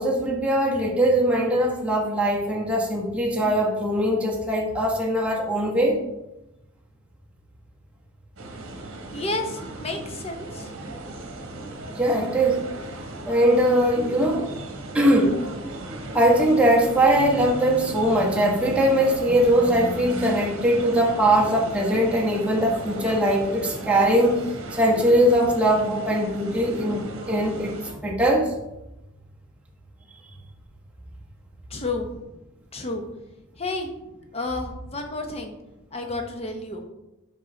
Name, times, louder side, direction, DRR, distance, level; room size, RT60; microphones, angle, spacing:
voice 1, 0.0-6.0 11.9-12.6 13.3-14.5 14.9-15.4 16.1-24.4 24.7-27.7 28.0-28.5, right 1 dB, 5° right, -3 dB, 1.1 m, -21 dB
sound 1, 8.4-27.9, right 1 dB, 60° right, 1.0 m, -36 dB
voice 2, 9.1-10.7 31.7-32.3 32.7-33.1 33.6-33.9 34.3-35.5 35.9-36.8, left 2 dB, 30° left, 4 dB, 0.8 m, -31 dB
5.4 x 5.3 x 3.8 m, 0.95 s
head